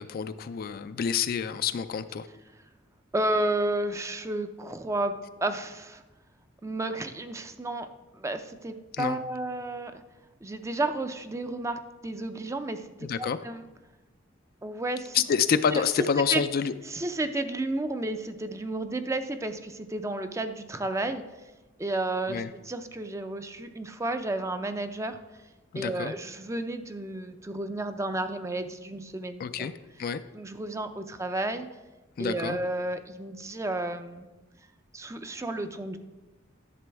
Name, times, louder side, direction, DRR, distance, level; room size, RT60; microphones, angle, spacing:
voice 1, 0.0-2.3 9.0-9.2 13.0-13.4 15.1-16.7 22.3-22.5 25.7-26.1 29.4-29.7 30.0-30.2 32.2-32.6, left 7 dB, 50° left, 12 dB, 0.3 m, -28 dB
voice 2, 3.1-6.0 6.6-7.9 8.1-9.9 10.4-12.9 13.2-13.6 14.6-15.2 15.7-16.4 16.9-21.2 21.8-25.2 25.7-29.7 30.3-31.7 32.2-34.3 34.9-36.0, right 2 dB, 15° right, 9 dB, 0.4 m, -32 dB
11.0 x 6.9 x 3.4 m, 1.1 s
head